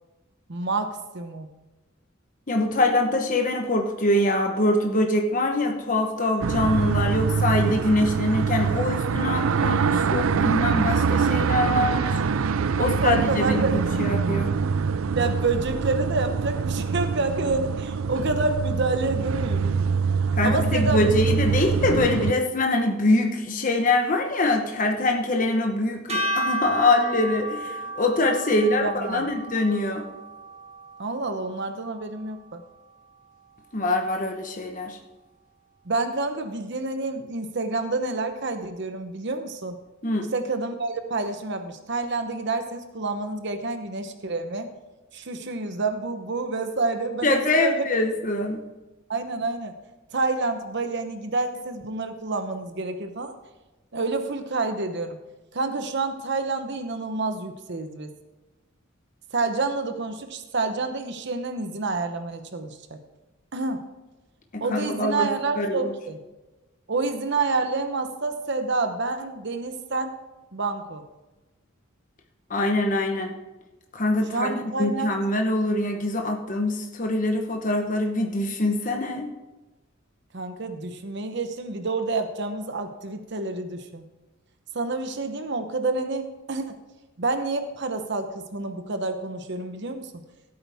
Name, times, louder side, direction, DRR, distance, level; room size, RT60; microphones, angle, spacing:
voice 1, 0.5-1.5 12.8-13.8 15.2-19.7 20.4-21.0 28.5-29.2 31.0-32.6 35.8-39.8 40.3-44.7 45.1-47.8 49.1-49.7 50.1-53.3 53.9-55.2 55.5-58.1 59.3-63.0 63.5-63.8 64.6-66.2 66.9-70.2 70.5-71.0 74.3-75.2 80.3-84.1 84.7-86.8 87.2-90.2, right 3 dB, 60° right, 7 dB, 0.9 m, -28 dB
voice 2, 2.5-12.2 12.8-14.5 20.4-30.0 33.7-35.0 40.0-40.3 47.2-48.6 64.5-65.9 72.5-73.3 73.9-79.3, left 2 dB, 40° left, 3 dB, 1.1 m, -24 dB
sound 1, 6.4-22.3, right 5 dB, 80° right, 0.4 m, -24 dB
sound 2, 26.1-32.4, right 1 dB, 30° right, 1.7 m, -33 dB
15.5 x 8.8 x 3.5 m, 1.1 s
head